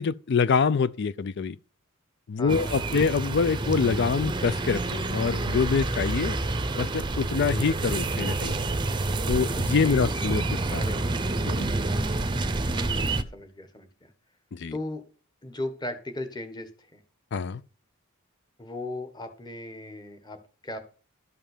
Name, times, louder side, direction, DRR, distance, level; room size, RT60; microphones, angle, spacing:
voice 1, 0.0-1.6 2.3-6.4 6.8-8.6 9.3-10.8 11.4-11.8 14.5-14.7 17.3-17.6, left 5 dB, 55° left, 0.4 m, -25 dB
voice 2, 2.4-3.1 9.5-10.4 10.8-11.1 12.7-14.1 14.7-15.0 15.4-17.0 18.6-20.8, left 1 dB, 20° left, 1.4 m, -37 dB
sound 1, 2.5-13.2, right 2 dB, 20° right, 0.7 m, -28 dB
12.5 x 5.7 x 6.7 m
head